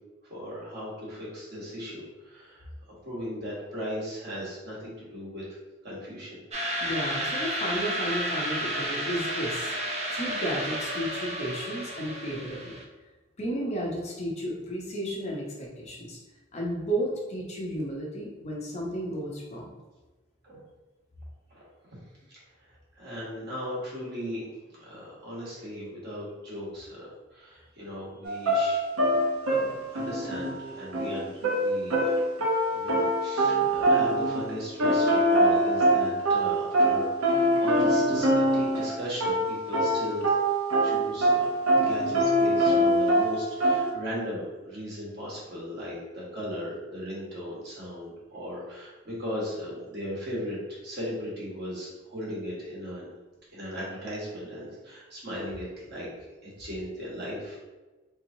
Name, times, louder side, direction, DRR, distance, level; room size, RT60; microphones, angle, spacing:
voice 1, 0.3-2.7 3.0-5.4 5.8-6.4 20.4-20.6 21.5-21.6 22.3-22.4 23.0-28.9 29.4-32.1 32.7-40.3 40.8-41.5 41.7-53.1 53.5-56.1 56.4-57.6, equal, 50° right, -6 dB, 1.2 m, -37 dB
sound 1, 6.5-12.8, right 1 dB, 30° right, 0.4 m, -32 dB
voice 2, 6.8-9.7 10.1-12.7 13.4-16.2 16.5-19.7, equal, 30° left, -3 dB, 0.6 m, -33 dB
sound 2, 28.2-34.5 34.8-38.9 39.2-43.9, right 1 dB, 85° right, 0.8 m, -24 dB
3.5 x 2.9 x 2.6 m, 1.2 s
head